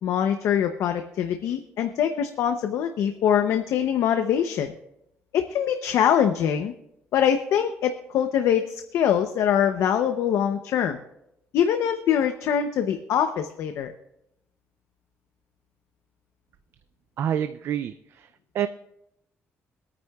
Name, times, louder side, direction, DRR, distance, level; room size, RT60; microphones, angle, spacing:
voice 1, 0.0-4.7 5.3-6.7 7.1-11.0 11.5-13.9, left 9 dB, 75° left, 7 dB, 0.7 m, -23 dB
voice 2, 17.2-18.3 18.5-18.7, right 9 dB, 55° right, 11 dB, 0.4 m, -27 dB
24.0 x 9.3 x 2.3 m, 0.83 s
cardioid pair, 150°, 5 cm